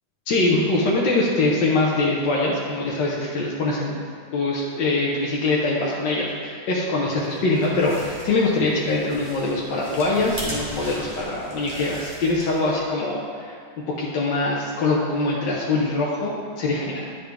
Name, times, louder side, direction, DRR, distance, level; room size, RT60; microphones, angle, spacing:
voice 1, 0.3-4.0 4.3-13.6 13.9-17.0, left 2 dB, 70° left, -4 dB, 1.5 m, -23 dB
sound 1, 7.2-12.8, equal, 20° right, 1.7 m, -38 dB
10.5 x 5.3 x 3.4 m, 2.1 s
omnidirectional pair, 2.0 m